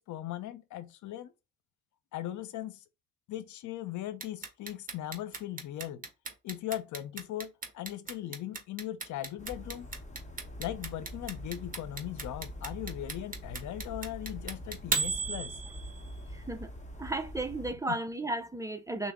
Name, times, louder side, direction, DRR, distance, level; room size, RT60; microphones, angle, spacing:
voice 1, 0.0-1.3 2.1-2.8 3.3-6.0 6.4-9.9 10.6-15.6 17.9-18.0, left 13 dB, 75° left, 0.6 m, -39 dB
Clock, 4.2-16.2, right 4 dB, 30° right, 1.0 m, -35 dB
sound 1, 9.4-17.7, equal, 25° left, 0.9 m, -44 dB
voice 2, 16.3-16.7 17.0-19.1, right 2 dB, 10° right, 0.5 m, -34 dB
5.8 x 2.1 x 3.5 m
cardioid pair, 90°, 30 cm